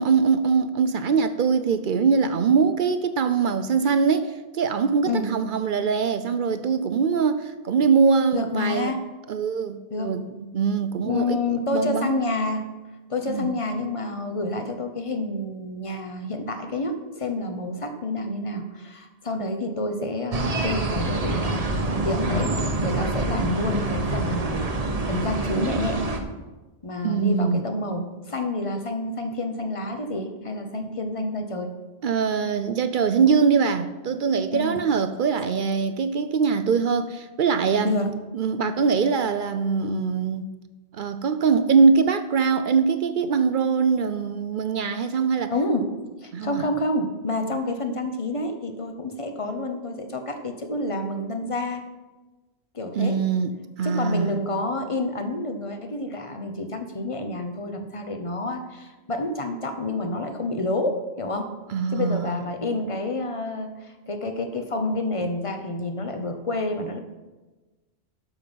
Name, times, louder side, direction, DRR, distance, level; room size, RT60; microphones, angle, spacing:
voice 1, 0.0-8.9 9.3-12.1 13.3-13.5 27.0-27.6 32.0-37.9 38.3-40.5 40.9-45.5 46.3-46.6 52.9-54.4 61.7-62.4, right 5 dB, 60° right, 10 dB, 0.6 m, -22 dB
voice 2, 8.3-9.1 9.9-10.1 11.0-12.7 13.1-24.7 25.1-26.1 26.8-31.7 34.5-34.8 37.8-38.1 45.5-45.9 46.2-51.8 52.7-53.2 53.8-61.6 61.9-67.0, left 2 dB, 30° left, 6 dB, 0.9 m, -28 dB
sound 1, 20.3-26.2, right 2 dB, 35° right, 0.9 m, -26 dB
12.0 x 5.8 x 5.2 m, 1.2 s
omnidirectional pair, 1.1 m